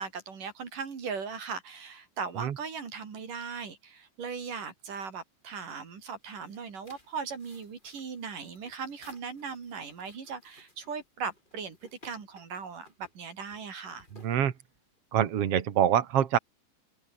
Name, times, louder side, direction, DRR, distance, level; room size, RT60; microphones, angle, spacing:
voice 1, 0.0-12.9 13.1-14.1, right 5 dB, 45° right, 4.9 m, -38 dB
sound 1, 6.0-15.1, left 1 dB, 10° left, 6.5 m, -59 dB
voice 2, 14.1-14.5 15.1-16.4, right 10 dB, 80° right, 1.3 m, -25 dB
open air
omnidirectional pair, 5.5 m